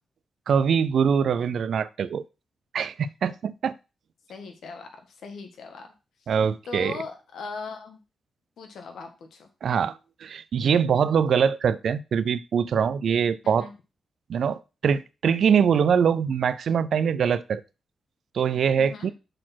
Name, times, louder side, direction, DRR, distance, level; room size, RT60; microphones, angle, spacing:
voice 1, 0.5-2.2 2.7-3.7 6.3-7.0 9.6-13.7 14.3-17.6 18.3-19.1, right 7 dB, 70° right, 0.4 m, -23 dB
voice 2, 4.3-4.9 5.2-5.9 6.2-8.0 8.6-9.5 13.4-13.7 18.8-19.1, left 4 dB, 80° left, 1.6 m, -39 dB
6.5 x 4.2 x 5.8 m
cardioid pair, 80°, 0 cm